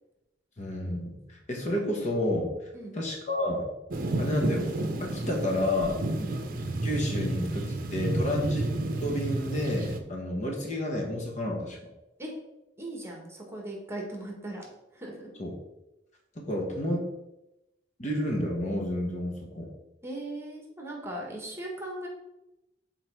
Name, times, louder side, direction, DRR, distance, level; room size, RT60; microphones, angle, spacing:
voice 1, 0.6-2.5 2.9-3.7 4.2-4.6 5.0-6.0 6.8-8.7 9.0-11.8 15.4-15.5 16.3-17.1 18.0-19.7, left 1 dB, 40° left, 0 dB, 1.2 m, -30 dB
sound 1, 3.9-10.0, right 1 dB, 50° right, 0.7 m, -31 dB
voice 2, 12.8-14.7 14.9-15.3 20.0-22.1, right 1 dB, 15° right, -1 dB, 1.4 m, -38 dB
6.4 x 4.0 x 4.6 m, 0.92 s
head